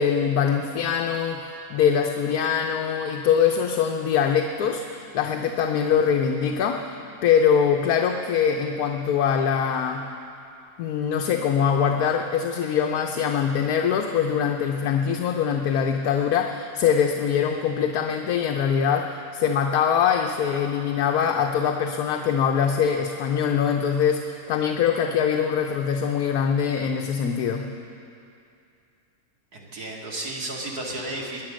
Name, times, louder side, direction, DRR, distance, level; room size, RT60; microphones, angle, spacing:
voice 1, 0.0-6.9 7.2-10.1 10.8-27.7, left 7 dB, 85° left, 3 dB, 1.3 m, -23 dB
voice 2, 29.5-31.4, right 2 dB, 90° right, -2 dB, 2.7 m, -33 dB
21.0 x 9.7 x 6.3 m, 2.5 s
omnidirectional pair, 1.6 m